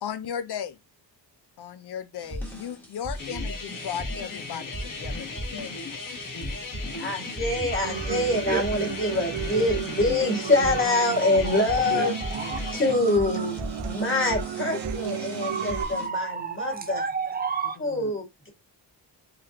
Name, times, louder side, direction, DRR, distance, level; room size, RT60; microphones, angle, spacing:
voice 1, 0.0-0.8 1.6-5.7 17.8-18.1, left 8 dB, 65° left, 0.6 m, -36 dB
sound 1, 2.2-16.1, equal, 5° left, 1.5 m, -37 dB
sound 2, 3.2-13.0, left 4 dB, 45° left, 1.2 m, -37 dB
voice 2, 7.0-12.2 12.7-13.6 13.8-17.0 17.8-18.5, left 2 dB, 30° left, 1.8 m, -25 dB
Human voice / Acoustic guitar, 7.8-15.8, right 9 dB, 70° right, 0.6 m, -34 dB
voice 3, 11.2-12.6 13.1-13.2 14.0-14.2 15.4-17.8, right 5 dB, 20° right, 0.5 m, -31 dB
3.8 x 3.4 x 2.8 m
wide cardioid pair, 120°, 43 cm